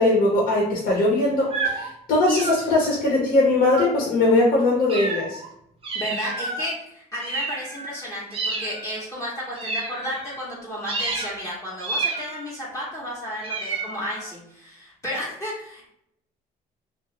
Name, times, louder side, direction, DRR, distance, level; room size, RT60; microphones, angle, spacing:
voice 1, 0.0-5.4, left 2 dB, 60° left, -4 dB, 0.9 m, -20 dB
sound 1, 1.5-1.9 2.2-2.9 3.7-4.1 4.9-5.5 5.8-6.7 7.2-8.0 8.3-9.0 9.5-10.5 10.9-11.4 11.8-12.6 13.4-14.3, right 3 dB, 35° right, 0.7 m, -30 dB
voice 2, 5.9-15.9, equal, 20° left, -6 dB, 0.8 m, -32 dB
2.4 x 2.3 x 3.0 m, 0.73 s
cardioid pair, 110°, 17 cm